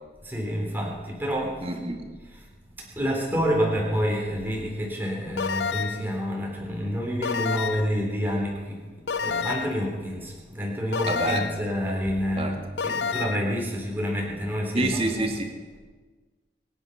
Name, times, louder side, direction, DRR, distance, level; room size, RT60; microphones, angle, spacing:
voice 1, 0.2-1.8 2.2-2.5 2.7-15.4, equal, 10° right, -2 dB, 3.5 m, -28 dB
voice 2, 1.6-2.1 11.1-11.5 12.4-12.6 14.7-15.8, right 2 dB, 30° right, 3 dB, 2.0 m, -28 dB
sound 1, 5.4-6.1 7.2-8.0 9.1-9.8 10.9-11.7 12.8-13.4, left 6 dB, 70° left, 0.5 m, -29 dB
23.0 x 10.0 x 5.8 m, 1.3 s
head